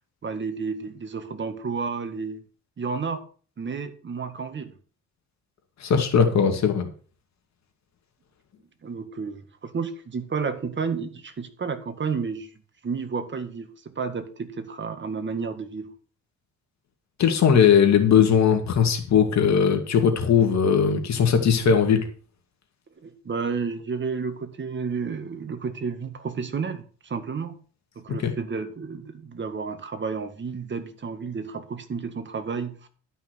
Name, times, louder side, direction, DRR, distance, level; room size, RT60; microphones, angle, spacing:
voice 1, 0.2-2.4 2.8-3.2 3.6-4.7 8.8-12.5 12.8-13.7 14.0-15.9 23.0-27.5 28.0-32.9, right 5 dB, 40° right, 8 dB, 1.9 m, -31 dB
voice 2, 5.8-6.9 17.2-22.1 28.2-28.3, left 7 dB, 65° left, 5 dB, 2.2 m, -19 dB
12.0 x 5.8 x 6.4 m, 0.41 s
cardioid pair, 90°, 30 cm